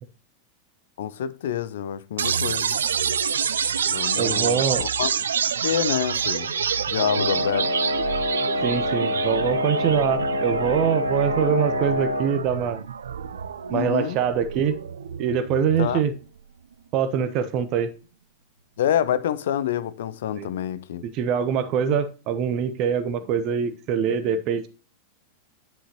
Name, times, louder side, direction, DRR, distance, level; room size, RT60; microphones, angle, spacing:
voice 1, 1.0-2.7 3.9-5.1 5.6-6.5 6.9-7.7 13.7-14.2 15.8-16.0 18.8-21.0, left 10 dB, 60° left, 0.5 m, -27 dB
sound 1, 2.2-16.2, right 7 dB, 65° right, 0.4 m, -28 dB
voice 2, 4.2-4.8 8.6-12.8 13.7-14.8 15.2-16.1 16.9-17.9 20.4-20.5 21.0-24.7, right 7 dB, 40° right, 1.0 m, -24 dB
Wind instrument woodwind instrument, 7.0-12.3, left 1 dB, 80° left, 1.9 m, -26 dB
9.9 x 5.6 x 2.9 m
figure-of-eight pair, 90°, 0 cm